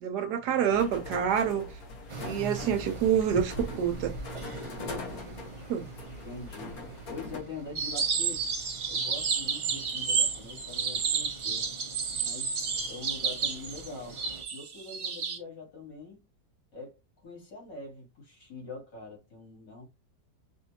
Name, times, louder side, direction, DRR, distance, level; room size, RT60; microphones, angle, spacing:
voice 1, 0.0-1.7 2.2-4.1 5.7-5.9, right 8 dB, 70° right, 1.3 m, -27 dB
sound 1, 0.7-7.4, left 2 dB, 60° left, 1.4 m, -41 dB
sound 2, 2.1-14.4, right 4 dB, 35° right, 0.5 m, -45 dB
voice 2, 6.2-6.8 7.1-8.4 8.9-11.7 12.2-16.2 16.7-19.8, left 3 dB, 75° left, 3.5 m, -44 dB
sound 3, 7.8-15.4, right 6 dB, 50° right, 1.2 m, -31 dB
5.6 x 2.7 x 2.8 m
omnidirectional pair, 1.9 m